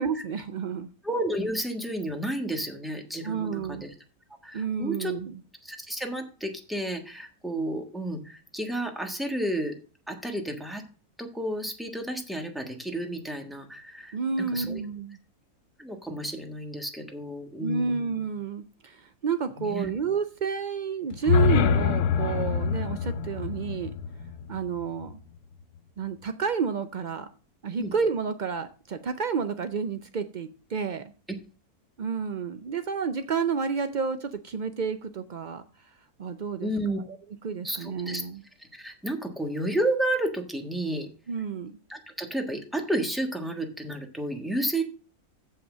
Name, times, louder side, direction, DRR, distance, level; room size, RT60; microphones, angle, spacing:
voice 1, 0.0-0.9 3.2-3.8 4.5-5.3 14.1-15.2 17.6-23.9 24.5-25.2 26.0-27.3 27.6-31.1 32.0-35.6 36.2-36.7 37.1-37.2 37.4-38.4 41.3-41.7, right 6 dB, 90° right, 10 dB, 0.4 m, -30 dB
voice 2, 1.0-3.9 4.4-5.1 5.6-9.8 10.1-10.8 11.2-14.8 15.8-18.1 19.6-19.9 27.8-27.9 36.6-37.0 37.6-38.2 38.6-41.1 41.9-44.8, right 1 dB, ahead, 4 dB, 1.2 m, -31 dB
sound 1, 21.1-25.2, left 6 dB, 80° left, 1.2 m, -25 dB
7.6 x 5.7 x 7.2 m, 0.36 s
omnidirectional pair, 1.6 m